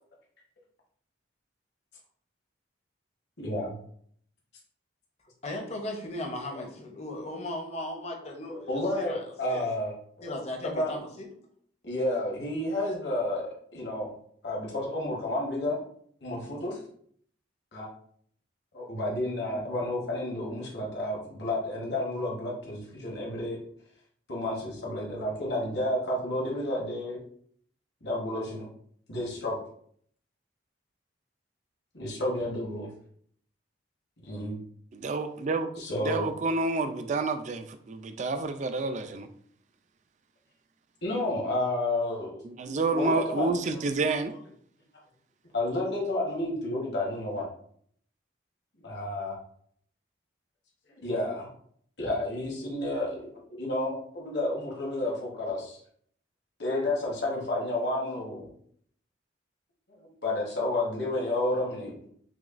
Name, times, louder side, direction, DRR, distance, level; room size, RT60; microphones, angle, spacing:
voice 1, 3.4-3.8 6.5-6.6 8.5-9.9 10.2-10.3 10.6-11.0 11.8-14.1 14.4-15.8 16.2-16.8 17.7-17.9 18.7-23.6 24.3-27.2 28.0-28.7 29.1-29.6 31.9-32.9 34.2-34.6 35.8-36.3 41.0-42.4 42.9-43.5 45.5-47.5 48.8-49.3 50.9-51.5 52.0-53.3 53.6-55.8 56.6-58.5 60.0-62.1, left 1 dB, 65° left, -3 dB, 1.1 m, -31 dB
voice 2, 5.4-9.7 10.2-11.3, left 1 dB, 35° left, 2 dB, 0.7 m, -37 dB
voice 3, 34.9-35.7 36.0-39.3 42.4-44.3, right 3 dB, 40° right, 9 dB, 0.3 m, -29 dB
6.0 x 2.3 x 2.4 m, 0.62 s
head